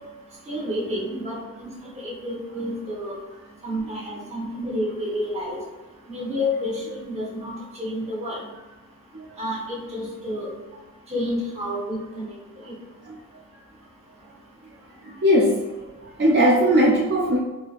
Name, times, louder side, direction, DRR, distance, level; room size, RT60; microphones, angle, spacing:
voice 1, 0.5-1.3 1.6-1.7 2.0-3.1 3.6-5.6 6.1-7.5 7.8-8.4 9.4-10.5 11.1-12.3 12.7-12.8, left 1 dB, 30° right, -4 dB, 1.0 m, -29 dB
voice 2, 15.0-17.4, equal, 45° right, -3 dB, 0.4 m, -20 dB
4.6 x 2.5 x 2.4 m, 1.2 s
head